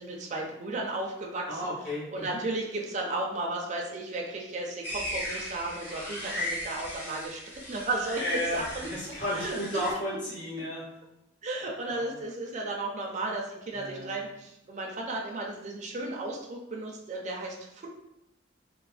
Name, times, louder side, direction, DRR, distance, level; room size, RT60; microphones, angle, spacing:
voice 1, 0.0-1.7 2.1-8.9 9.3-9.6 11.4-17.9, right 2 dB, 40° right, -1 dB, 0.5 m, -34 dB
voice 2, 1.5-2.4 8.2-8.6 8.9-10.8 11.9-12.0 13.7-14.1, equal, 65° left, -10 dB, 1.4 m, -33 dB
sound 1, 4.8-9.9, left 1 dB, 10° left, 0.8 m, -37 dB
3.1 x 2.1 x 2.4 m, 0.85 s
head